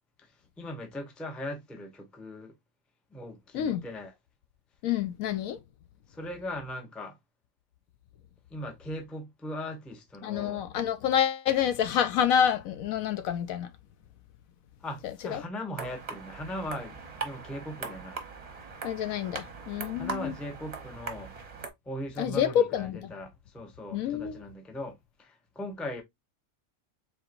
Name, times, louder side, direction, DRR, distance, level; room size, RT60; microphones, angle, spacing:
voice 1, 0.6-2.5 3.1-4.1 6.1-7.2 8.5-10.6 14.8-18.2 20.0-21.3 21.9-26.0, left 1 dB, ahead, 0.5 m, -39 dB
voice 2, 4.8-5.6 10.2-13.7 15.3-15.4 18.8-20.3 22.2-23.1 23.9-24.4, left 9 dB, 75° left, 1.0 m, -28 dB
sound 1, 15.8-21.7, right 4 dB, 30° right, 0.8 m, -40 dB
4.5 x 3.7 x 2.5 m
omnidirectional pair, 1.5 m